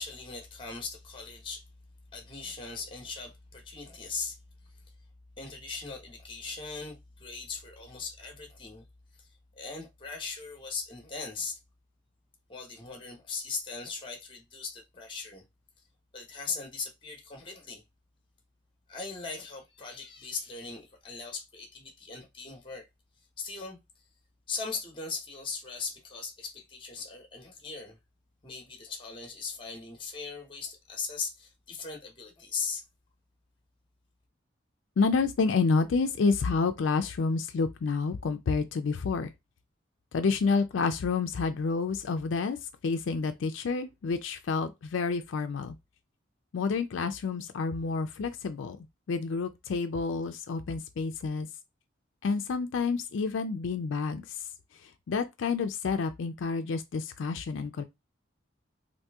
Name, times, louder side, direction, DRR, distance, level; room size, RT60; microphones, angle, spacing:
voice 1, 0.0-1.6 2.1-4.4 5.4-8.8 9.2-9.3 9.6-11.6 12.5-15.4 16.1-17.8 18.9-22.8 23.4-23.8 24.5-28.0 28.4-32.8, left 4 dB, 25° left, 0.9 m, -39 dB
voice 2, 35.0-39.3 40.1-42.6 42.8-45.8 46.5-51.5 52.2-54.2 54.8-57.8, left 4 dB, 80° left, 0.4 m, -29 dB
2.9 x 2.6 x 3.4 m
head